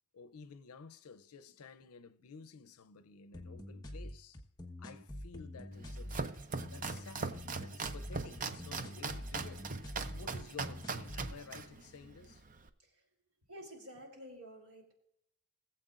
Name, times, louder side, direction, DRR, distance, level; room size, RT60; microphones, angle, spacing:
voice 1, 0.1-4.4 4.8-6.2 6.7-9.7 10.1-12.4, left 5 dB, 85° left, 0.6 m, -53 dB
sound 1, 3.3-11.3, left 1 dB, 15° left, 1.2 m, -46 dB
Domestic sounds home sounds, 5.7-12.7, right 4 dB, 35° right, 0.6 m, -41 dB
voice 2, 13.5-14.9, equal, 75° right, 3.2 m, -52 dB
21.5 x 7.8 x 2.5 m
head